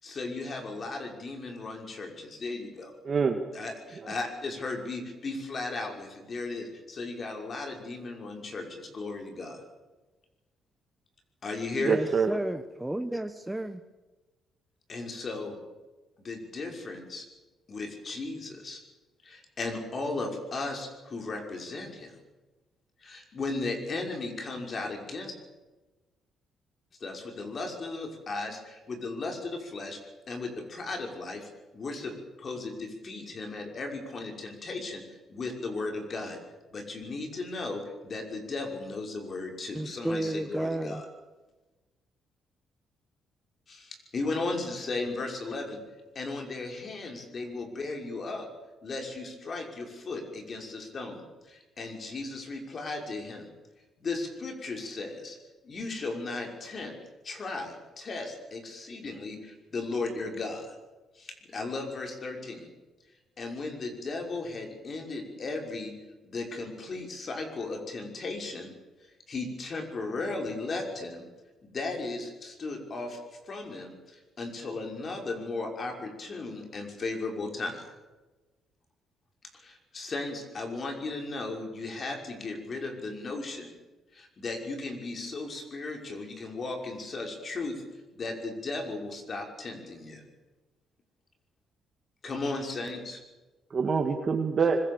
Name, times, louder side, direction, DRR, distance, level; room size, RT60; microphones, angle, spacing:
voice 1, 0.0-2.9 3.5-9.6 11.4-12.0 14.9-15.6 16.2-17.3 17.7-18.8 19.2-22.1 23.0-25.3 27.0-30.0 30.3-32.1 32.4-36.4 36.7-41.1 43.7-45.8 46.1-48.5 48.8-53.5 54.0-55.4 55.6-56.9 57.2-60.8 61.1-62.7 63.4-65.9 66.2-68.7 69.3-71.3 71.6-73.2 73.5-77.9 79.5-83.8 84.1-87.8 88.2-90.2 92.2-93.2, left 3 dB, 45° left, 3 dB, 5.9 m, -36 dB
voice 2, 3.0-3.4 4.0-4.1 11.8-12.3 93.7-94.8, right 5 dB, 45° right, 4 dB, 2.2 m, -25 dB
voice 3, 11.7-13.8 39.7-41.0, right 1 dB, 10° right, 8 dB, 1.2 m, -32 dB
25.0 x 22.0 x 7.3 m, 1.2 s
cardioid pair, 90°, 0 cm